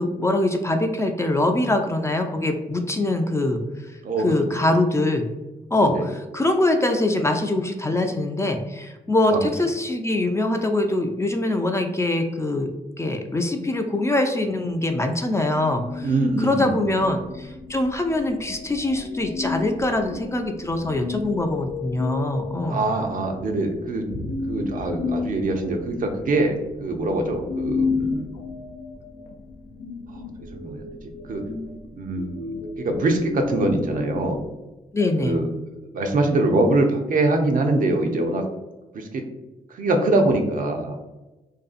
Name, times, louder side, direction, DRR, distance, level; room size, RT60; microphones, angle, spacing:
voice 1, 0.0-3.6 4.2-5.3 5.7-12.7 13.0-16.1 16.4-22.8 34.9-35.4, left 2 dB, 20° left, 4 dB, 0.3 m, -23 dB
sound 1, 15.3-34.5, left 4 dB, 85° left, 0.4 m, -33 dB
voice 2, 16.0-16.7 22.7-24.1 24.5-28.3 30.1-30.2 30.5-30.8 31.3-31.5 32.0-34.4 35.2-35.5 35.9-38.4 38.9-39.3 39.7-41.0, right 2 dB, 60° right, 4 dB, 0.5 m, -23 dB
2.5 x 2.3 x 2.4 m, 1.1 s
cardioid pair, 55°, 16 cm